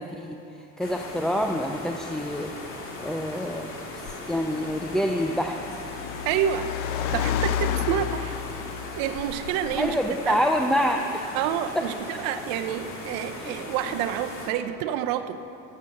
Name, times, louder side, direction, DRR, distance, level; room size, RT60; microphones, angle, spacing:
voice 1, 0.0-2.5 3.0-5.6 9.8-11.4 11.8-11.9 12.1-12.2 13.4-13.5, equal, ahead, 3 dB, 0.3 m, -27 dB
sound 1, 0.8-14.5, left 2 dB, 35° left, 2.3 m, -39 dB
Car, 2.2-10.1, left 9 dB, 65° left, 0.7 m, -33 dB
voice 2, 6.2-6.7 7.1-8.3 9.0-9.9 10.3-10.4 11.3-15.4, right 10 dB, 70° right, 8 dB, 0.7 m, -28 dB
12.0 x 7.4 x 6.4 m, 2.8 s
supercardioid pair, 120°, 35 cm